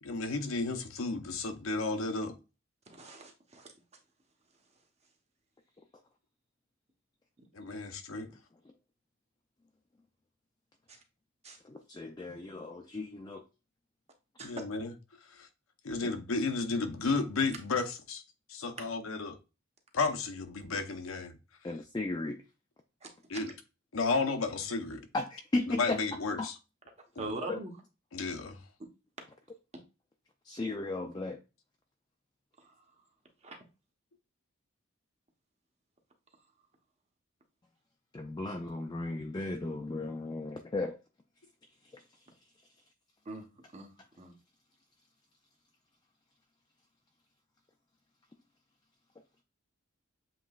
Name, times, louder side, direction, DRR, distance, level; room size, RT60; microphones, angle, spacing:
voice 1, 0.0-2.3 7.5-8.3 14.4-14.9 15.8-18.2 18.5-19.4 19.9-21.3 23.3-23.5 23.9-25.0 25.8-26.5 28.1-28.6, left 3 dB, 90° left, 0.8 m, -32 dB
voice 2, 2.9-3.7 10.9-11.0 11.4-11.6 14.4-14.6 23.0-23.4 27.2-27.7 32.6-32.8 33.4-33.6 43.2-43.4 43.7-43.9 44.2-44.3, right 2 dB, 30° right, 1.0 m, -42 dB
voice 3, 11.6-13.4 16.0-16.1 21.6-22.4 25.1-26.0 26.4-26.5 27.5-27.6 30.4-31.4 38.1-41.0 41.8-42.0, left 2 dB, 20° left, 0.4 m, -35 dB
7.4 x 3.0 x 2.4 m
head